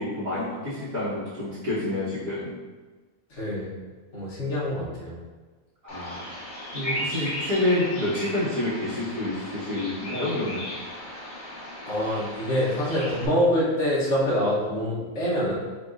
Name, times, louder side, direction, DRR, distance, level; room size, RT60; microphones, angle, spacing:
voice 1, 0.0-2.5 5.8-6.2 6.7-10.7, left 1 dB, 75° right, -13 dB, 1.7 m, -28 dB
voice 2, 3.3-3.7 4.1-5.1 11.8-15.5, equal, 55° left, -7 dB, 1.5 m, -25 dB
Bird vocalization bird call bird song, 5.9-13.3, equal, 30° left, 0.9 m, -36 dB
4.6 x 4.4 x 2.5 m, 1.3 s
omnidirectional pair, 1.5 m